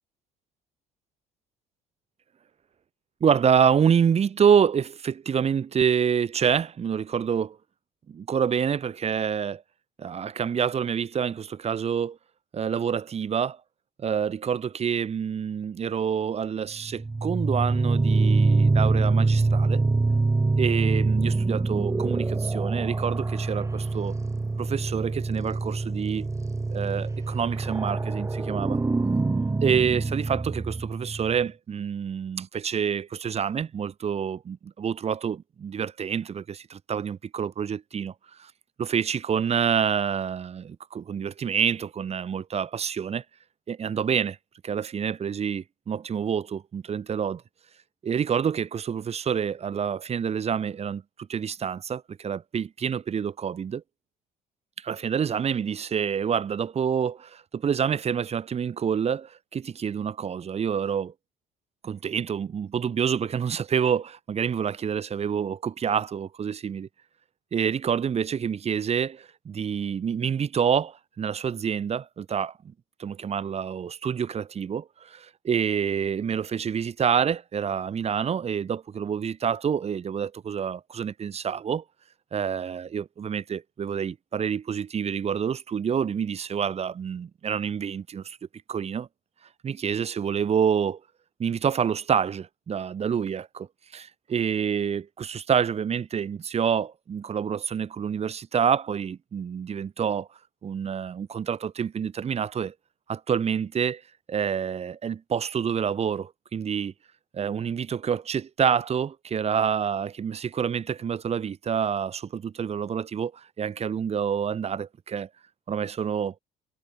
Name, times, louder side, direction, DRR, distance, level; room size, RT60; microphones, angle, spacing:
voice 1, 3.2-7.6 8.1-9.6 10.0-12.2 12.5-13.6 14.0-19.8 20.6-24.1 24.6-26.3 26.7-28.8 29.6-38.1 38.4-38.5 38.8-43.2 43.7-44.4 44.6-47.4 48.0-53.8 54.8-61.1 61.8-66.9 67.5-72.5 73.0-81.8 82.3-88.4 88.7-89.1 89.6-91.0 91.4-100.3 100.6-102.7 103.1-104.0 104.3-106.9 107.3-115.3 115.7-116.3, right 7 dB, 40° right, 5.1 m, -27 dB
sound 1, 16.8-31.4, right 3 dB, 20° right, 5.2 m, -25 dB
supercardioid pair, 80°, 16 cm